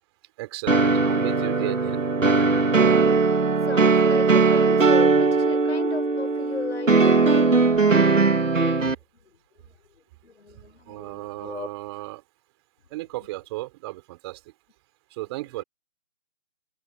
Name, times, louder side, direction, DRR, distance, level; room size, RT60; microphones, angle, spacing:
voice 1, 0.4-2.0 10.9-12.2 12.9-14.4 15.2-15.6, right 20 dB, 20° right, 4.3 m, -34 dB
sound 1, 0.7-8.9, right 4 dB, 85° right, 3.0 m, -19 dB
voice 2, 3.3-7.5 10.2-11.7, left 5 dB, 65° left, 4.7 m, -36 dB
figure-of-eight pair, 155°, 37 cm